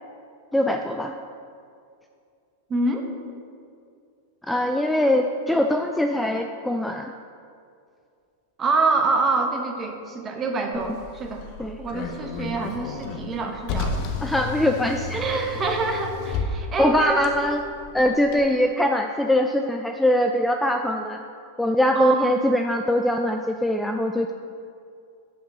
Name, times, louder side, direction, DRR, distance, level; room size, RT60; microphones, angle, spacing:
voice 1, 0.5-1.1 4.4-7.1 11.6-11.8 14.2-15.5 15.9-16.0 16.8-17.6 17.9-21.2 21.6-24.3, left 1 dB, 5° left, 4 dB, 0.3 m, -22 dB
voice 2, 2.7-3.1 8.6-11.4 11.8-14.1 15.1-17.3 21.9-22.2, right 3 dB, 25° right, 3 dB, 1.0 m, -26 dB
Car, 10.7-18.4, left 4 dB, 50° left, 0.8 m, -33 dB
5.9 x 5.0 x 6.1 m, 2.3 s
hypercardioid pair, 115°, 0 cm